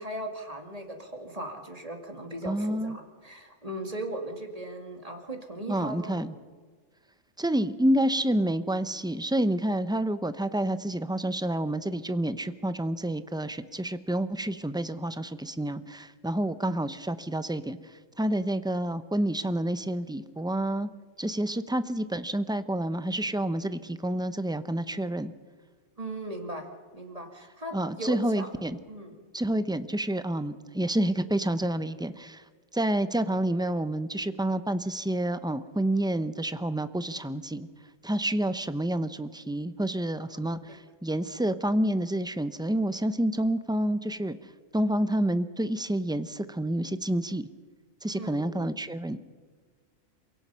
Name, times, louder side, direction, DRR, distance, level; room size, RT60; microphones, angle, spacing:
voice 1, 0.0-6.2 26.0-26.7 26.9-28.5 28.9-29.1 40.3-40.8 48.1-48.5, right 1 dB, 25° right, 4 dB, 2.6 m, -38 dB
voice 2, 2.4-3.0 5.7-6.3 7.4-20.9 21.2-25.3 27.7-28.8 29.3-32.4 32.7-37.7 38.0-44.4 44.7-47.5 48.0-49.2, right 1 dB, 5° right, 12 dB, 0.6 m, -29 dB
28.0 x 17.0 x 5.7 m, 1.5 s
omnidirectional pair, 1.4 m